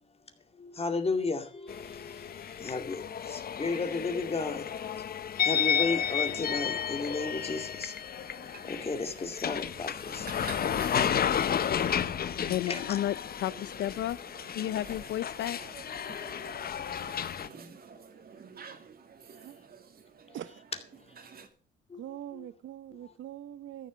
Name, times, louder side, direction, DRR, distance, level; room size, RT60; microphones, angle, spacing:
voice 1, 0.6-4.6 5.4-7.9 8.6-13.0 17.4-17.8 20.3-20.4 20.7-20.8 21.9-22.5 23.0-23.1, left 3 dB, 30° left, 2.2 m, -35 dB
sound 1, 1.7-17.5, left 8 dB, 50° left, 0.9 m, -32 dB
sound 2, 8.1-21.5, right 6 dB, 50° right, 2.2 m, -51 dB
voice 2, 12.5-14.2 14.5-15.6, left 12 dB, 70° left, 0.5 m, -32 dB
voice 3, 22.0-23.9, right 11 dB, 70° right, 0.8 m, -42 dB
14.0 x 6.7 x 7.6 m
cardioid pair, 90°, 20 cm